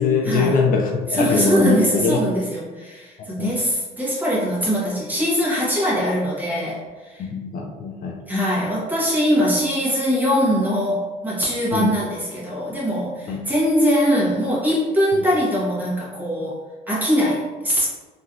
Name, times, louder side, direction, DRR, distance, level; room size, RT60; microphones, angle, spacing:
voice 1, 0.0-2.2 3.2-3.5 7.2-8.2 11.7-11.9 13.3-13.4, left 4 dB, 55° left, 0 dB, 0.5 m, -22 dB
voice 2, 1.1-7.3 8.3-17.9, equal, 10° right, -6 dB, 1.1 m, -22 dB
3.0 x 2.6 x 2.5 m, 1.3 s
cardioid pair, 110°, 17 cm